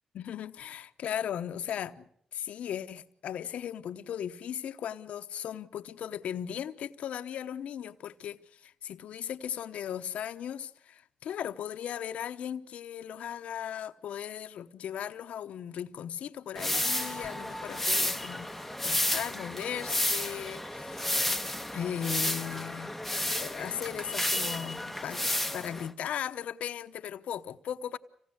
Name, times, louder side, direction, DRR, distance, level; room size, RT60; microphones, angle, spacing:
voice 1, 0.1-21.0 21.7-25.3 25.5-28.0, left 9 dB, 80° left, 1.0 m, -37 dB
sound 1, 16.6-25.9, left 1 dB, 5° left, 1.3 m, -32 dB
26.5 x 18.0 x 8.0 m
cardioid pair, 60°, 2 cm